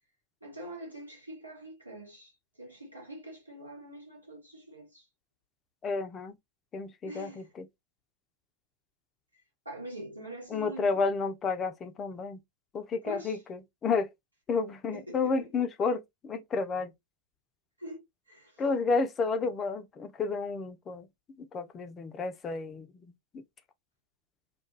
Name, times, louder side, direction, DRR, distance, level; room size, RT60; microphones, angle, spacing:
voice 1, 0.4-2.3 2.6-5.0 7.0-7.5 9.6-11.0 13.0-13.4 14.9-15.2 15.6-15.7 17.8-18.6, right 1 dB, 85° right, 1.2 m, -44 dB
voice 2, 5.8-6.3 6.7-7.7 10.5-12.4 12.7-14.1 14.5-16.9 18.6-21.1 21.4-23.4, left 4 dB, 25° left, 0.4 m, -31 dB
2.2 x 2.2 x 2.9 m
figure-of-eight pair, 90°, 0 cm